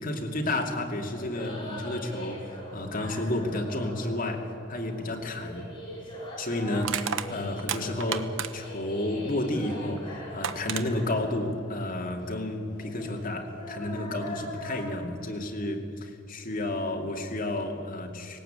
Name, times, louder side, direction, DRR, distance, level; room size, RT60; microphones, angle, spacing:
voice 1, 0.0-5.7 6.4-18.4, left 1 dB, 45° left, 2 dB, 2.6 m, -31 dB
sound 1, 1.1-14.9, equal, 25° left, 7.3 m, -42 dB
Crushing, 5.4-5.6 6.8-8.8 10.0-10.1 10.4-10.9, right 8 dB, 70° right, 1.0 m, -32 dB
19.5 x 18.0 x 8.9 m, 2.5 s
head